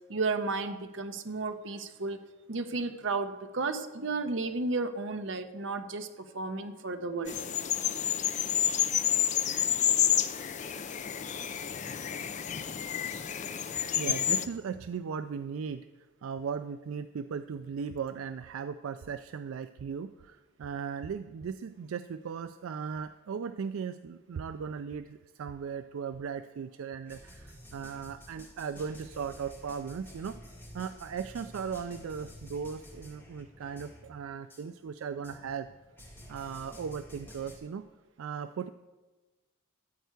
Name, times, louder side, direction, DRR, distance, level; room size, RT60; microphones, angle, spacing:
voice 1, 0.1-2.2 2.5-6.1 6.3-7.4 12.9-13.0, right 3 dB, 60° right, 8 dB, 0.8 m, -33 dB
sound 1, 7.3-14.5, left 10 dB, 35° left, 0.4 m, -29 dB
voice 2, 14.0-15.9 16.2-30.4 30.7-35.7 36.3-37.8 38.2-38.7, right 6 dB, 80° right, 11 dB, 0.4 m, -37 dB
sound 2, 27.1-34.2 34.5-34.6 35.2-37.6, equal, 10° left, 2.0 m, -50 dB
13.5 x 4.6 x 8.2 m, 1.2 s
head